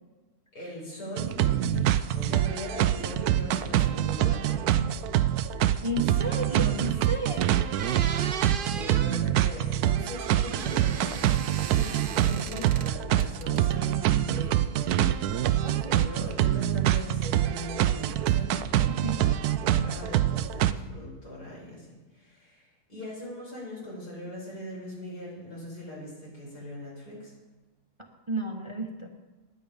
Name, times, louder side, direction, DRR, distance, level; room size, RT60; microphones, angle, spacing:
voice 1, 0.5-4.7 7.4-7.7 8.6-15.2 15.9-27.3, equal, 85° left, -5 dB, 6.3 m, -40 dB
sound 1, 1.2-20.7, right 12 dB, 75° right, 1.1 m, -25 dB
voice 2, 5.6-7.5 15.6-16.1 18.9-19.3 28.3-29.1, right 1 dB, 20° right, 2 dB, 1.0 m, -33 dB
sound 2, 7.0-7.1 7.5-9.2 10.1-12.9 13.2-13.9, right 6 dB, 50° right, 0.6 m, -37 dB
20.0 x 7.8 x 5.1 m, 1.3 s
omnidirectional pair, 1.7 m